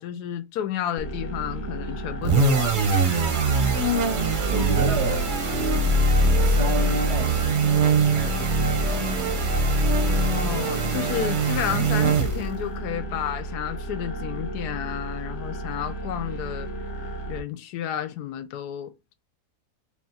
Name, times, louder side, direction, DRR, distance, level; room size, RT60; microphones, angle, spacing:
voice 1, 0.0-3.2 10.1-16.7 17.3-19.1, left 10 dB, 90° left, 1.2 m, -31 dB
sound 1, 1.0-17.4, right 1 dB, 55° left, 1.0 m, -34 dB
sound 2, 2.2-12.6, right 3 dB, 45° right, 0.6 m, -22 dB
voice 2, 4.5-5.3 6.4-9.4, right 2 dB, 85° right, 1.5 m, -32 dB
3.6 x 2.4 x 4.0 m
omnidirectional pair, 1.7 m